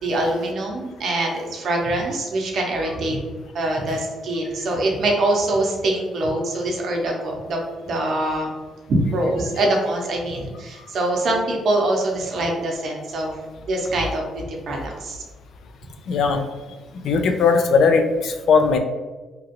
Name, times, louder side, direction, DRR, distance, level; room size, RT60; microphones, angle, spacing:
voice 1, 0.0-3.2 3.5-8.5 8.9-13.4 13.7-15.2, right 1 dB, 65° right, 0 dB, 0.7 m, -24 dB
voice 2, 16.1-16.5 17.0-18.8, left 5 dB, 70° left, 6 dB, 0.3 m, -18 dB
2.9 x 2.4 x 2.8 m, 1.3 s
cardioid pair, 90°, 0 cm